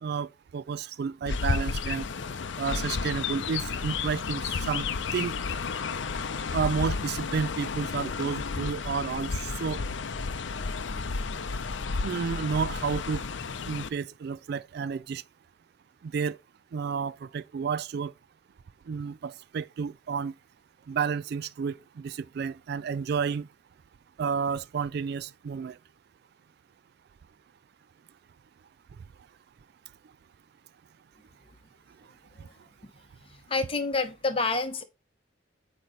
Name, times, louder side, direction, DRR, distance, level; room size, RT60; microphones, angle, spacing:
voice 1, 0.0-2.1 2.6-4.9 5.1-5.3 6.5-9.8 12.0-13.2 13.7-15.2 16.0-16.4 16.7-18.1 18.9-20.3 20.9-23.5 24.2-25.8, right 6 dB, 55° right, 0.3 m, -31 dB
Chirp tweet, 1.2-13.9, left 4 dB, 75° left, 0.6 m, -32 dB
voice 2, 33.2-34.8, left 3 dB, 30° left, 1.0 m, -29 dB
8.5 x 3.1 x 5.2 m
head